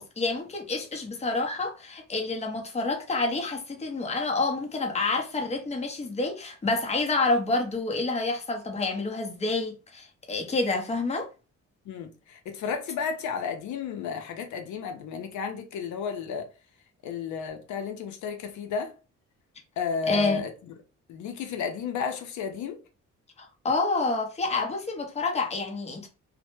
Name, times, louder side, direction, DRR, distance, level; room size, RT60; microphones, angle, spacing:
voice 1, 0.0-11.3 20.1-20.4 23.4-26.1, left 3 dB, 20° left, 0.7 m, -28 dB
voice 2, 11.9-16.5 17.0-18.9 19.8-20.5 21.1-22.8, left 6 dB, 75° left, 0.6 m, -32 dB
2.0 x 2.0 x 3.0 m
cardioid pair, 90°, 30 cm